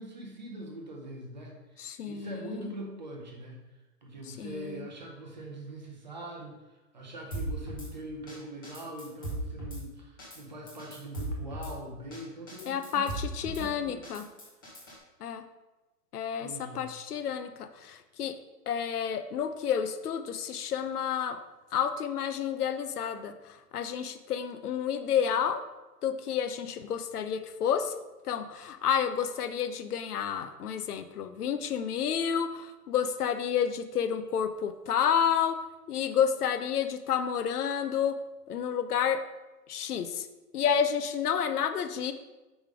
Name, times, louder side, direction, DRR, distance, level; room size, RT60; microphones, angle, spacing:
voice 1, 0.0-3.6 4.0-13.1 13.4-14.2 16.4-16.8, right 1 dB, 30° right, 0 dB, 0.7 m, -43 dB
voice 2, 1.8-2.7 4.4-4.9 12.6-14.2 15.2-15.4 16.1-18.4 18.7-21.4 21.7-25.6 26.0-27.9 28.2-35.6 35.9-38.2 38.5-39.2 39.7-40.3 40.5-42.1, left 8 dB, 70° left, 10 dB, 0.7 m, -30 dB
Drum kit / Snare drum, 7.3-7.9 8.3-8.4 8.6-9.8 10.2-10.4 10.7-11.7 12.1-12.2 12.5-13.6 14.0-15.0, right 1 dB, 15° left, 0.7 m, -37 dB
5.3 x 5.0 x 4.9 m, 1.1 s
hypercardioid pair, 180°, 48 cm